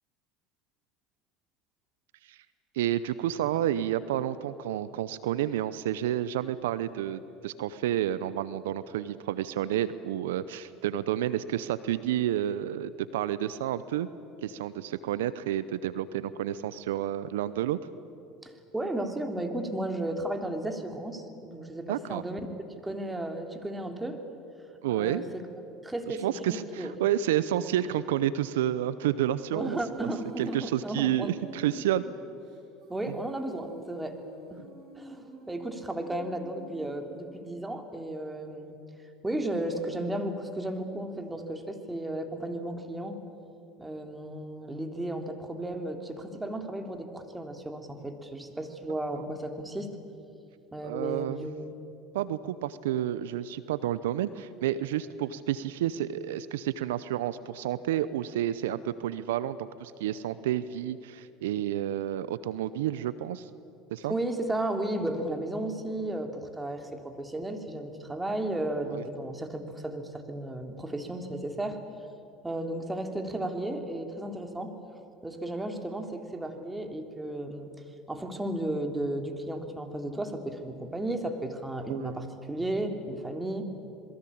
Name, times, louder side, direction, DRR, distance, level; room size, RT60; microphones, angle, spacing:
voice 1, 2.7-14.1 14.4-17.8 21.9-22.2 24.8-25.3 26.1-30.1 30.4-32.0 34.6-34.7 49.1-49.2 50.8-51.4 52.1-63.5 63.9-64.1 68.8-69.0 81.9-82.2, right 12 dB, 80° right, 16 dB, 0.7 m, -30 dB
voice 2, 18.4-22.4 22.8-24.2 24.9-25.4 25.8-26.9 29.5-31.3 32.9-34.2 34.5-34.6 34.9-38.8 39.2-43.2 43.8-50.0 50.7-51.5 64.1-71.8 72.4-74.8 75.2-77.7 78.1-83.7, right 1 dB, 10° right, 5 dB, 3.3 m, -34 dB
Female singing, 29.8-37.5, right 3 dB, 55° right, 7.0 m, -48 dB
27.5 x 22.0 x 8.7 m, 2.7 s
hypercardioid pair, 80°, 0 cm